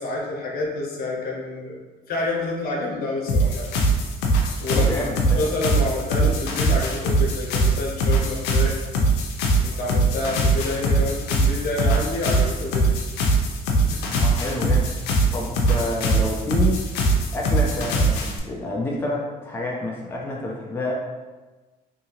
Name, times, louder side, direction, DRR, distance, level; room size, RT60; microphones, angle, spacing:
voice 1, 0.0-1.8 2.1-3.7 4.6-5.0 5.3-8.8 9.6-12.9 13.9-14.0, left 2 dB, 60° left, -2 dB, 0.8 m, -28 dB
sound 1, 3.3-18.4, right 2 dB, 90° left, 0.5 m, -22 dB
voice 2, 4.7-5.5 14.1-15.0 15.3-16.9 17.3-20.9, left 2 dB, 15° left, -3 dB, 0.4 m, -28 dB
2.8 x 2.7 x 2.8 m, 1.2 s
cardioid pair, 110°, 17 cm